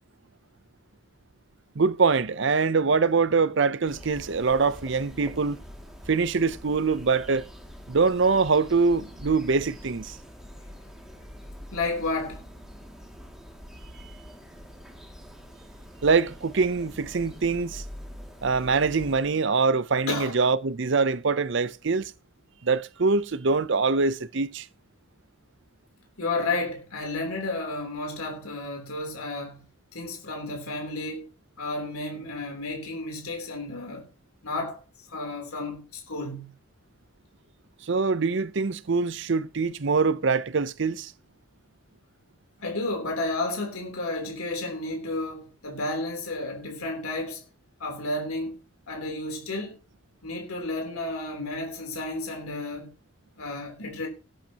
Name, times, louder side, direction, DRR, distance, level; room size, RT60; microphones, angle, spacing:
voice 1, 1.8-5.6 6.1-7.4 7.9-10.2 16.0-17.8 18.4-22.1 22.6-24.7 37.8-41.1, right 4 dB, 55° right, 0.6 m, -24 dB
sound 1, 3.9-19.2, equal, ahead, 2.3 m, -45 dB
voice 2, 11.7-12.4 20.1-20.4 26.2-29.6 29.9-31.3 31.6-34.1 34.4-34.8 35.1-36.5 42.6-47.4 47.8-48.6 48.9-49.8 50.2-52.9 53.4-54.1, left 2 dB, 85° left, 3.4 m, -32 dB
18.5 x 9.1 x 2.9 m
head